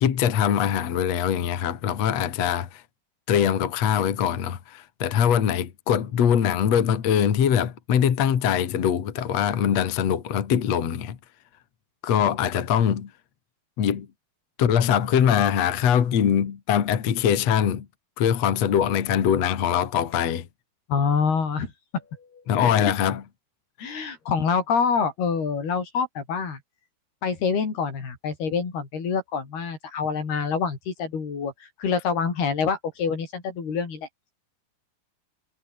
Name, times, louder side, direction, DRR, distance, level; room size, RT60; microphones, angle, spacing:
voice 1, 0.0-2.8 3.3-11.2 12.0-13.1 13.8-14.1 14.6-17.9 18.2-20.5 22.5-23.2, left 9 dB, 50° left, 2.8 m, -22 dB
voice 2, 20.9-22.7 23.8-26.6 27.2-31.5 31.8-34.1, left 5 dB, 80° left, 7.1 m, -26 dB
omnidirectional pair, 4.5 m